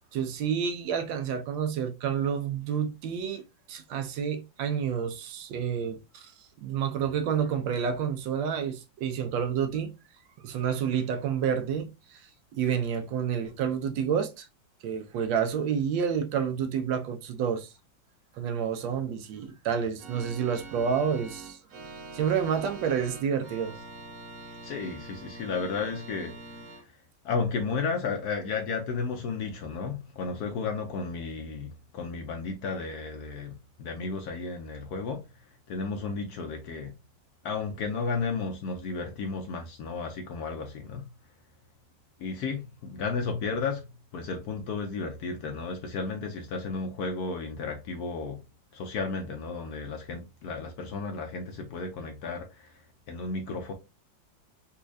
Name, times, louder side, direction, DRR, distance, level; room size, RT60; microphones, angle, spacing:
voice 1, 0.1-3.4 3.7-6.3 6.6-9.9 10.4-12.2 12.5-14.5 14.8-17.7 18.3-21.6 22.1-23.7, right 7 dB, 80° right, 1.4 m, -29 dB
Organ, 20.0-26.8, right 3 dB, 60° right, 1.4 m, -44 dB
voice 2, 24.6-26.4 27.2-35.3 35.7-37.0 37.4-41.1 42.2-43.9 44.1-48.4 48.7-52.8 53.1-53.7, left 4 dB, 70° left, 1.0 m, -33 dB
4.2 x 2.3 x 2.5 m
omnidirectional pair, 2.1 m